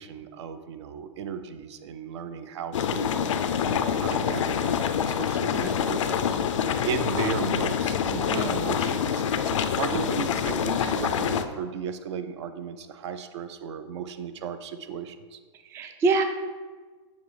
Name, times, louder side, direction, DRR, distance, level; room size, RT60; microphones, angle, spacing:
voice 1, 0.0-15.4, right 7 dB, 65° right, 10 dB, 0.5 m, -36 dB
sound 1, 2.7-11.4, left 8 dB, 85° left, 0.5 m, -26 dB
voice 2, 15.6-16.2, right 4 dB, 15° right, 7 dB, 0.3 m, -25 dB
7.2 x 3.1 x 4.7 m, 1.4 s
hypercardioid pair, 135°, 16 cm